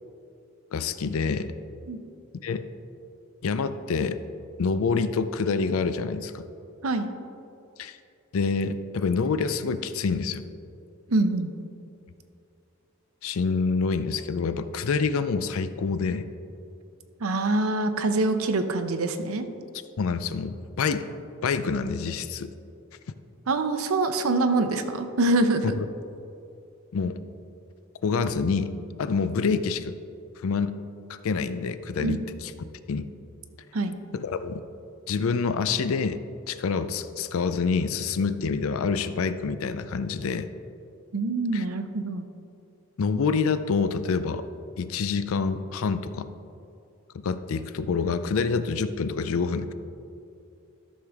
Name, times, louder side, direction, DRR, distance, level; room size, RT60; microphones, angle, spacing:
voice 1, 0.7-1.5 2.4-2.6 3.4-4.2 4.6-6.4 7.8-8.0 8.3-10.4 13.2-16.3 20.0-21.1 21.4-22.5 25.6-25.9 26.9-27.2 28.0-28.7 29.0-30.0 30.4-30.8 31.1-32.5 32.9-33.1 34.1-34.6 35.1-36.2 36.5-40.5 41.5-41.6 43.0-44.5 44.8-46.3 47.1-49.7, left 5 dB, 75° left, 12 dB, 0.4 m, -27 dB
voice 2, 11.1-11.5 17.2-19.4 23.5-25.8 32.0-32.2 33.7-34.0 41.1-42.2, right 2 dB, 80° right, 8 dB, 0.6 m, -25 dB
13.0 x 6.4 x 3.5 m, 2.6 s
head